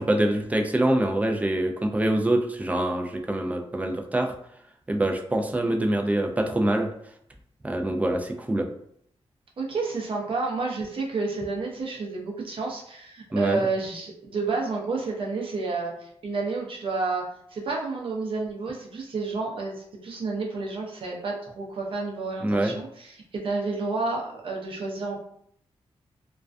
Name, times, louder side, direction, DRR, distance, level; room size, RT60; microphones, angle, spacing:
voice 1, 0.0-4.3 4.9-6.9 7.6-8.7 13.3-13.7 22.4-22.7, right 1 dB, 15° right, 3 dB, 0.3 m, -25 dB
voice 2, 9.6-25.2, right 3 dB, 55° right, -1 dB, 0.6 m, -30 dB
2.3 x 2.2 x 2.4 m, 0.69 s
cardioid pair, 95°, 11 cm